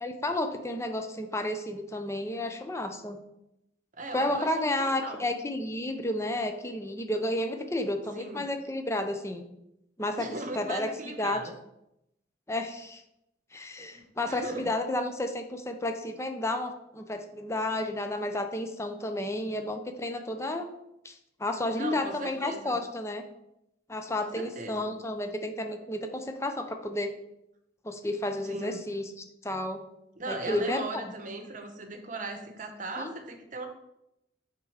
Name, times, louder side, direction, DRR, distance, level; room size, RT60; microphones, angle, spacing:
voice 1, 0.0-3.2 4.1-9.4 10.0-10.3 10.5-10.9 11.2-11.4 12.5-13.0 13.5-20.7 21.0-23.2 23.9-27.1 27.8-29.1 29.4-29.8 30.3-31.0 33.0-33.1, left 1 dB, 15° left, 6 dB, 0.6 m, -31 dB
voice 2, 3.9-5.3 8.1-8.5 10.2-11.6 13.9-14.7 21.7-22.8 24.2-24.9 28.4-28.8 30.2-33.7, right 2 dB, 45° right, 6 dB, 0.9 m, -38 dB
7.4 x 3.7 x 4.8 m, 0.83 s
head